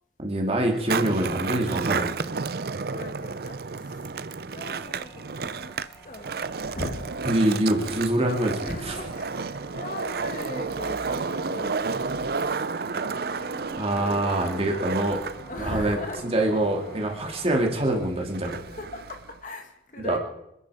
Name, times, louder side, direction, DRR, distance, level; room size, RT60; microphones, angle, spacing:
voice 1, 0.2-2.2 7.2-9.0 12.9-13.2 13.8-15.2 15.6-16.0 16.3-18.6 20.0-20.2, right 1 dB, 30° right, 1 dB, 2.7 m, -25 dB
Skateboard, 0.7-19.4, right 4 dB, 55° right, 0.5 m, -32 dB
voice 2, 2.9-4.1 4.5-5.7 6.0-7.1 7.4-7.5 8.6-13.8 15.5-16.5 18.7-20.2, left 1 dB, 45° left, 4 dB, 2.1 m, -39 dB
sound 1, 4.9-17.6, right 1 dB, 10° left, 5.2 m, -49 dB
26.5 x 10.5 x 5.0 m, 0.83 s
head